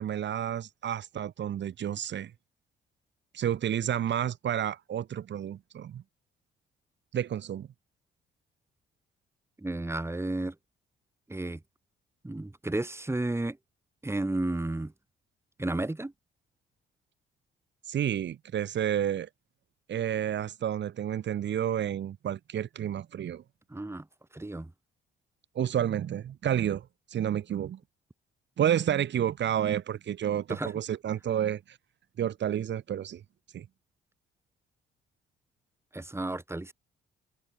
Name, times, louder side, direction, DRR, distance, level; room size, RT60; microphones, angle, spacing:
voice 1, 0.0-2.3 3.3-6.0 7.1-7.7 17.9-19.3 19.9-23.4 25.6-27.8 28.6-31.8 32.2-33.2 33.5-33.7, right 10 dB, 65° right, 3.8 m, -30 dB
voice 2, 9.6-10.5 11.3-11.6 12.2-13.6 14.0-14.9 15.6-16.1 23.7-24.1 24.3-24.7 30.5-30.7 35.9-36.7, right 2 dB, 10° right, 6.8 m, -32 dB
cardioid pair, 90°, 20 cm